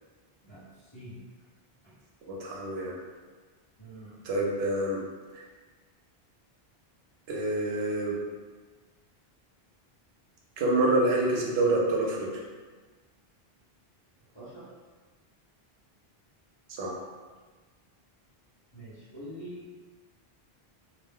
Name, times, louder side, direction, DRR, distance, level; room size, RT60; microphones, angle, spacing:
voice 1, 0.4-1.2 1.8-2.0 3.8-4.2 14.3-14.7 18.7-19.8, equal, 30° left, -13 dB, 1.0 m, -45 dB
voice 2, 2.3-3.0 4.2-5.0 5.3-5.4 7.3-8.2 10.6-12.4 16.8-16.9, right 2 dB, 90° right, -2 dB, 0.8 m, -27 dB
2.4 x 2.0 x 3.5 m, 1.4 s
omnidirectional pair, 1.0 m